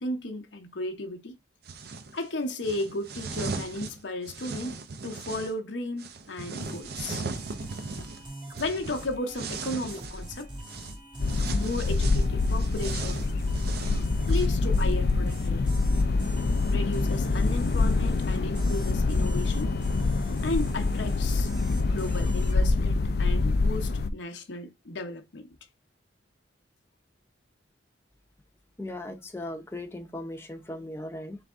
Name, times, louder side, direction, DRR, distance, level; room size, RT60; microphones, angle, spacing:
voice 1, 0.0-1.3 2.1-4.8 5.0-7.2 8.0-8.1 8.6-10.5 11.5-13.3 14.3-15.8 16.7-19.7 20.4-21.5 21.8-25.4, left 2 dB, 80° left, 0.8 m, -34 dB
sound 1, 1.7-2.1 2.6-5.5 6.0-10.3 10.7-10.9 11.3-14.5, right 4 dB, 60° right, 0.6 m, -38 dB
sound 2, 6.6-22.6, right 1 dB, 30° right, 1.3 m, -44 dB
sound 3, 11.2-24.1, left 3 dB, 60° left, 0.4 m, -25 dB
voice 2, 28.8-31.4, left 1 dB, 15° left, 0.7 m, -38 dB
4.0 x 3.4 x 3.5 m
head